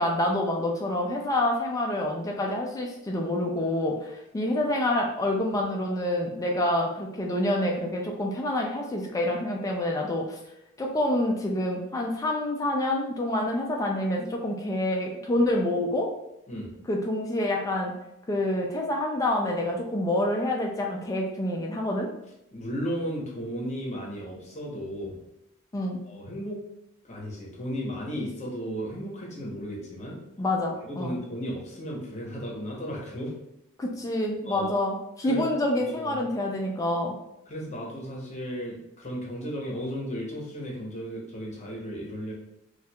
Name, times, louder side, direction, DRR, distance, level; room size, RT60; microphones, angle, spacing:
voice 1, 0.0-10.4 10.8-16.1 16.9-17.9 18.3-22.1 25.7-26.0 30.4-31.2 33.8-37.1, left 1 dB, 15° left, -1 dB, 0.3 m, -27 dB
voice 2, 22.5-25.2 26.1-26.6 27.0-30.2 30.8-33.3 34.4-34.7 35.2-35.5 35.8-36.3 37.5-42.3, equal, 30° left, -2 dB, 0.8 m, -35 dB
4.3 x 2.3 x 2.2 m, 0.83 s
head